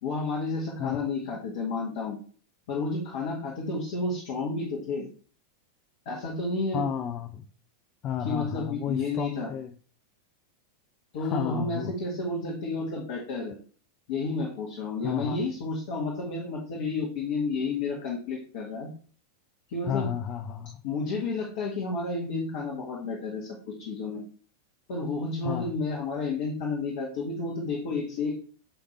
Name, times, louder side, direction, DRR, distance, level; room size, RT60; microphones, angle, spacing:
voice 1, 0.0-2.2 2.7-5.1 6.1-6.8 8.2-9.5 11.1-13.5 14.1-18.9 19.7-20.1 20.8-24.2 24.9-28.3, left 3 dB, 50° left, -3 dB, 2.0 m, -31 dB
voice 2, 6.7-7.5 8.0-9.7 11.2-11.9 15.0-15.4 19.8-20.8 25.4-25.7, left 8 dB, 35° left, 7 dB, 0.6 m, -32 dB
8.8 x 3.6 x 4.7 m, 0.41 s
figure-of-eight pair, 90°, 0 cm